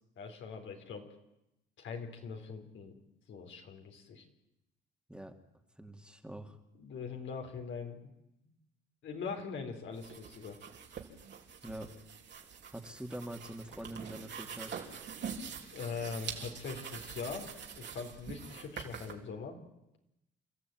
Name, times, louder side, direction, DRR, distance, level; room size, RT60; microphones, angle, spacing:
voice 1, 0.2-1.0 1.8-3.0 3.3-4.2 6.8-8.0 8.4-8.5 9.0-10.6 15.7-19.6, left 5 dB, 75° left, 4 dB, 4.3 m, -42 dB
voice 2, 5.8-6.6 11.6-11.9 12.7-14.8, right 1 dB, 5° right, 4 dB, 2.4 m, -44 dB
sound 1, 9.9-19.1, right 7 dB, 60° right, 3.6 m, -45 dB
29.0 x 13.5 x 9.3 m, 0.87 s
cardioid pair, 90°, 20 cm